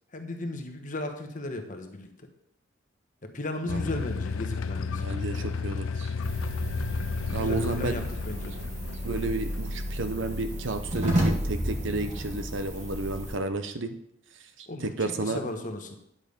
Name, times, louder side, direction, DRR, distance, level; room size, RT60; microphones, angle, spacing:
voice 1, 0.1-2.1 3.2-5.0 7.2-8.6 14.7-16.0, left 1 dB, 40° left, 5 dB, 1.2 m, -35 dB
sound 1, 3.7-10.6, left 5 dB, 75° left, 0.4 m, -33 dB
voice 2, 4.9-6.1 7.3-8.0 9.0-14.0 14.6-15.4, right 2 dB, 65° right, 9 dB, 0.8 m, -32 dB
sound 2, 6.2-13.3, equal, 35° right, 2.0 m, -32 dB
9.9 x 7.5 x 5.2 m, 0.77 s
head